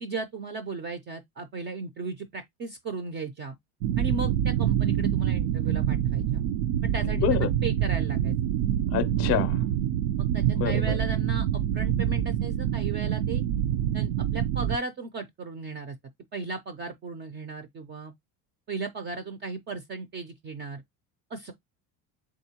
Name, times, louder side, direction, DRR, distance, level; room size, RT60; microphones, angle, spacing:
voice 1, 0.0-3.6 4.0-6.4 6.8-8.4 10.2-13.4 13.9-16.0 16.3-18.1 18.7-20.8 21.3-21.5, right 3 dB, 30° right, 0.3 m, -36 dB
sound 1, 3.8-14.8, right 10 dB, 85° right, 0.5 m, -26 dB
voice 2, 7.0-7.5 8.9-9.6 10.5-11.0, left 9 dB, 35° left, 0.4 m, -27 dB
3.6 x 3.6 x 2.7 m
cardioid pair, 145°, 42 cm